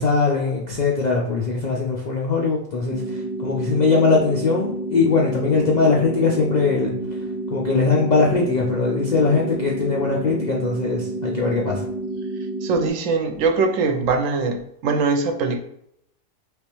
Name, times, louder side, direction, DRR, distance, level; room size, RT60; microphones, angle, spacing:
voice 1, 0.0-6.9 7.5-11.9, left 4 dB, 70° left, -2 dB, 0.4 m, -21 dB
sound 1, 2.9-12.9, right 2 dB, 45° right, 1.0 m, -29 dB
voice 2, 12.6-15.6, right 4 dB, 75° right, 6 dB, 0.9 m, -22 dB
3.5 x 3.0 x 3.0 m, 0.74 s
omnidirectional pair, 1.4 m